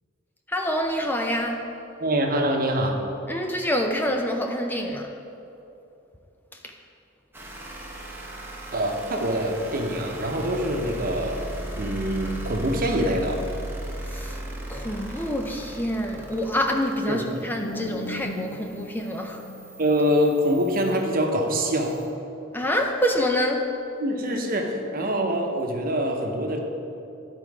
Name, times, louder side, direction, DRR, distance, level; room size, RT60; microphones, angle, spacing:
voice 1, 0.5-1.6 3.3-5.1 6.6-6.7 14.1-14.4 14.7-19.4 22.5-23.7, equal, 10° left, 3 dB, 0.4 m, -26 dB
voice 2, 2.0-2.9 8.7-11.4 11.8-13.4 17.1-17.2 19.8-22.0 24.0-26.6, equal, 50° right, 2 dB, 0.9 m, -24 dB
sound 1, 7.3-22.1, right 1 dB, 10° right, 0.9 m, -38 dB
sound 2, 17.6-20.4, left 2 dB, 70° left, 0.6 m, -38 dB
11.0 x 4.5 x 4.8 m, 2.8 s
head